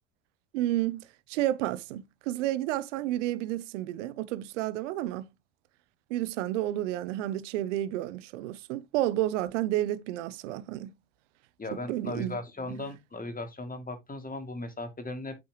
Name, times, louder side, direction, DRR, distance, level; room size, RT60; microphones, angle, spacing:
voice 1, 0.5-5.3 6.1-10.9 11.9-12.4 12.8-12.9, right 14 dB, 85° right, 0.8 m, -31 dB
voice 2, 11.6-15.4, left 2 dB, 25° left, 2.7 m, -37 dB
8.4 x 6.0 x 3.1 m
hypercardioid pair, 65°, 36 cm